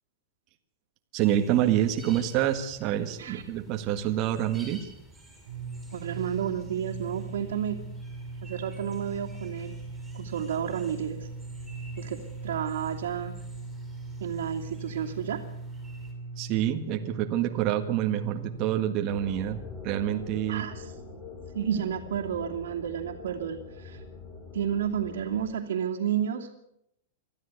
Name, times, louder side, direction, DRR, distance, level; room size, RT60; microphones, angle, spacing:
voice 1, 1.1-4.9 16.4-20.7, right 11 dB, 30° right, 5 dB, 1.6 m, -27 dB
sound 1, 1.2-16.1, right 1 dB, ahead, 6.1 m, -52 dB
sound 2, 5.5-18.7, right 3 dB, 70° right, 2.7 m, -40 dB
voice 2, 5.9-7.8 8.4-9.7 10.1-11.3 12.0-13.3 14.2-15.4 20.5-20.9 21.5-24.0 24.5-26.5, right 9 dB, 85° right, -2 dB, 2.6 m, -31 dB
sound 3, 19.1-25.5, left 4 dB, 15° left, 4.4 m, -44 dB
23.5 x 14.0 x 8.3 m, 0.77 s
supercardioid pair, 165°, 0 cm